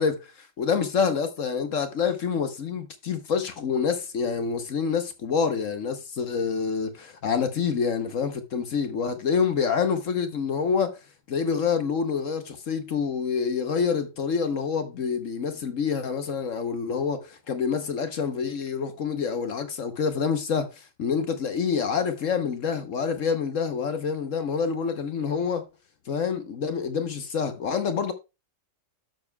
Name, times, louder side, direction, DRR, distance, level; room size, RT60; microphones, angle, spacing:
voice 1, 0.0-11.0 11.3-25.6 26.1-28.1, left 6 dB, 55° left, 1.1 m, -27 dB
12.0 x 7.0 x 2.2 m
omnidirectional pair, 1.8 m